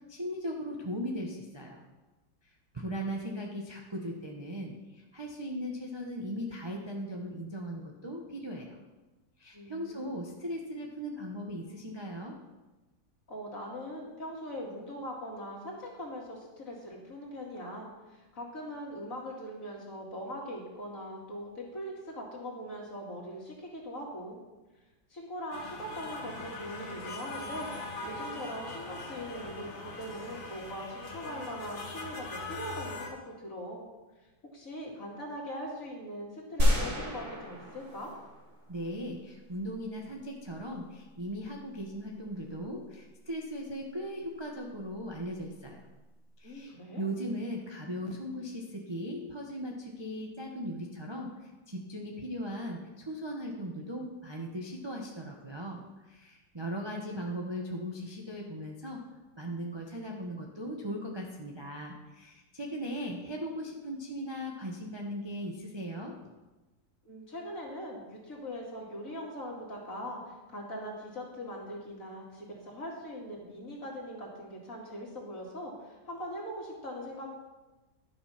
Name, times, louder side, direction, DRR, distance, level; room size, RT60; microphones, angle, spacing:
voice 1, 0.1-1.8 2.7-8.8 9.4-12.3 38.7-45.9 46.4-55.8 56.1-59.0 59.4-66.2, equal, 20° right, -1 dB, 0.7 m, -38 dB
voice 2, 9.5-10.1 13.3-24.4 25.1-27.7 28.0-33.8 34.5-38.1 46.4-47.0 67.0-77.3, equal, 45° left, -2 dB, 2.6 m, -41 dB
sound 1, 25.5-33.1, left 3 dB, 85° left, 2.3 m, -41 dB
sound 2, 36.6-38.9, left 1 dB, 50° right, 3.2 m, -29 dB
12.0 x 6.6 x 5.8 m, 1.1 s
omnidirectional pair, 2.1 m